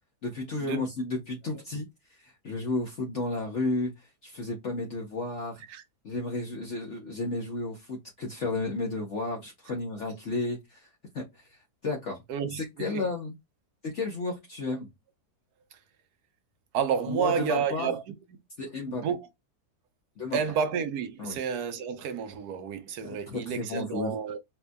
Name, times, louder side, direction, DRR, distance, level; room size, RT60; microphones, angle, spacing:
voice 1, 0.2-1.9 2.2-3.9 4.2-5.6 6.0-10.9 11.1-11.2 11.8-12.2 12.8-13.3 13.8-14.9 17.1-17.9 18.6-19.0 20.2-20.4 21.2-21.4 23.0-24.1, left 2 dB, 50° left, 1.1 m, -32 dB
voice 2, 12.3-13.0 16.7-18.0 18.9-19.2 20.3-24.4, right 7 dB, 75° right, 1.2 m, -30 dB
4.4 x 2.5 x 2.2 m
omnidirectional pair, 1.7 m